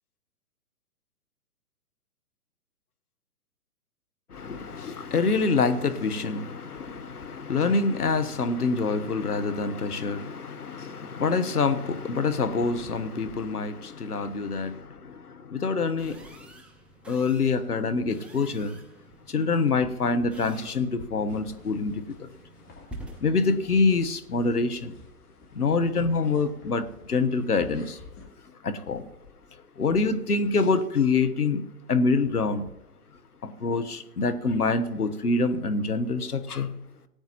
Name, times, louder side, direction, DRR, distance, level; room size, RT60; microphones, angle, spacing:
voice 1, 4.3-16.5 17.1-18.8 19.3-22.3 23.2-24.9 25.5-28.0 28.6-29.1 29.8-32.7 33.4-36.8, left 4 dB, 90° left, 1.2 m, -26 dB
sound 1, 16.0-25.1, right 1 dB, 5° right, 0.4 m, -49 dB
sound 2, 21.3-28.3, left 4 dB, 25° left, 3.7 m, -50 dB
18.0 x 9.1 x 3.0 m
figure-of-eight pair, 120°, 44 cm